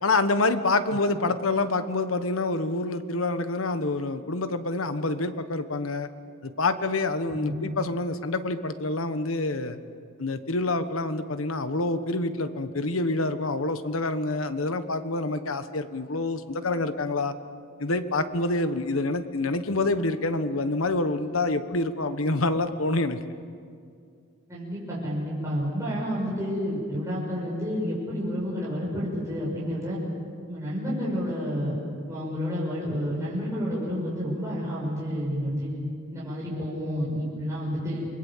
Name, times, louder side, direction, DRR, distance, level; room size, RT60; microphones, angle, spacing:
voice 1, 0.0-6.1 6.4-9.8 10.2-17.3 17.8-23.2, left 2 dB, 85° left, 10 dB, 1.3 m, -27 dB
voice 2, 24.5-30.0 30.5-31.8 32.1-35.7 36.1-38.1, equal, 15° right, -7 dB, 6.3 m, -30 dB
28.5 x 21.5 x 7.4 m, 2.3 s
head